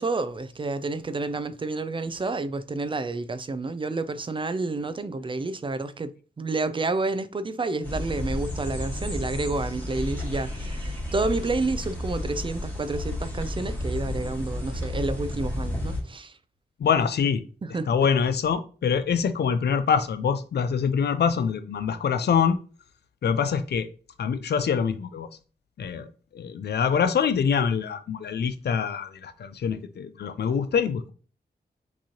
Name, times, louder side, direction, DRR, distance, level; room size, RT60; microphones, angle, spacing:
voice 1, 0.0-16.3 17.6-17.9, right 3 dB, 30° right, 0.3 m, -29 dB
sound 1, 7.8-16.0, left 1 dB, 10° left, 1.6 m, -32 dB
voice 2, 16.8-17.4 17.7-22.6 23.2-23.9 24.2-25.3 25.8-26.1 26.3-31.1, left 6 dB, 85° left, 0.5 m, -25 dB
6.1 x 3.0 x 2.9 m
wide cardioid pair, 115°, 17 cm